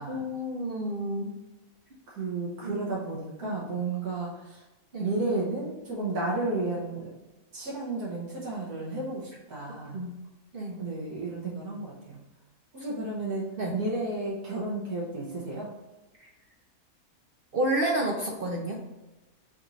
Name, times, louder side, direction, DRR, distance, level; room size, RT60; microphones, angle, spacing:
voice 1, 0.0-1.4 2.6-2.8 3.4-3.6 4.9-5.1 9.9-10.2 10.5-10.8 13.6-13.8 16.2-16.3 17.5-18.8, right 1 dB, 60° right, -1 dB, 0.6 m, -30 dB
voice 2, 2.1-4.6 5.0-7.1 7.5-10.0 10.8-12.2 12.7-15.7, right 2 dB, 80° right, -5 dB, 1.7 m, -32 dB
4.4 x 3.9 x 3.0 m, 1.1 s
omnidirectional pair, 1.6 m